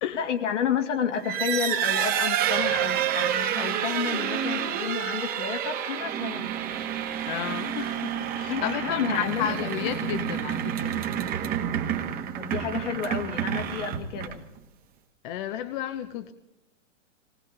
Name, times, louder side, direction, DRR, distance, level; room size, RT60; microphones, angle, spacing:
voice 1, 0.1-6.5 8.5-9.5 9.8-9.9 12.4-14.4, left 7 dB, 70° left, 2.2 m, -30 dB
sound 1, 1.1-14.6, right 10 dB, 25° right, 1.4 m, -29 dB
voice 2, 7.2-11.1 15.2-16.3, left 11 dB, 40° left, 0.9 m, -32 dB
19.0 x 18.5 x 4.0 m
hypercardioid pair, 135°, 38 cm